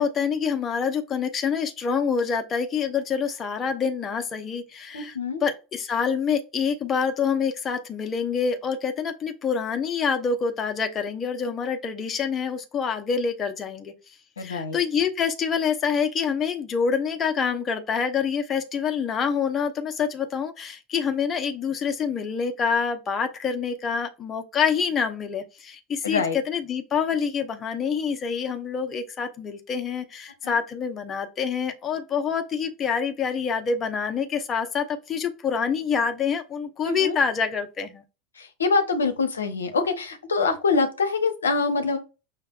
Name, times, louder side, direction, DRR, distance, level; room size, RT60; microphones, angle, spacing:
voice 1, 0.0-38.0, left 6 dB, 30° left, 0.8 m, -26 dB
voice 2, 4.9-5.4 14.4-14.8 26.0-26.4 30.4-30.6 36.9-37.2 38.4-42.0, left 4 dB, 80° left, 0.7 m, -25 dB
5.8 x 3.3 x 2.4 m
figure-of-eight pair, 80°, 0 cm